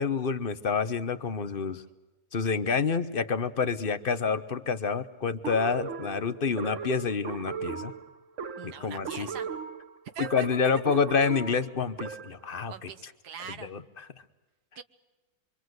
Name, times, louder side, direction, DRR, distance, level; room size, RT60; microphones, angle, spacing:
voice 1, 0.0-1.8 2.3-7.9 8.6-9.3 10.2-13.1 13.5-14.1, left 5 dB, 40° left, 12 dB, 1.1 m, -28 dB
sound 1, 5.4-12.5, right 6 dB, 55° right, 1.3 m, -37 dB
voice 2, 8.6-9.5 10.1-10.5 12.7-13.7 14.7-14.8, right 7 dB, 85° right, 11 dB, 1.7 m, -42 dB
26.0 x 24.5 x 8.0 m, 1.1 s
omnidirectional pair, 1.7 m